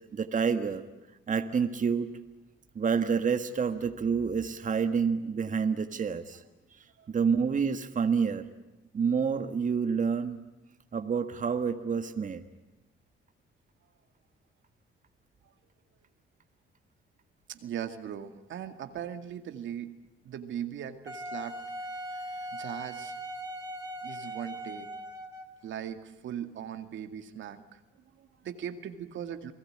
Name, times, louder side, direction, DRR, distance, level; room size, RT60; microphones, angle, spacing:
voice 1, 0.1-0.8 1.3-2.1 2.7-6.4 7.1-8.4 8.9-10.4 10.9-12.4, right 6 dB, 40° right, 7 dB, 1.7 m, -28 dB
voice 2, 17.5-19.9 20.2-23.1 24.0-24.9 25.6-27.8 28.1-29.5, right 9 dB, 75° right, 7 dB, 2.1 m, -39 dB
Wind instrument woodwind instrument, 21.1-25.6, right 1 dB, 15° right, 4.3 m, -39 dB
29.5 x 19.5 x 8.8 m, 1.0 s
cardioid pair, 90°, 20 cm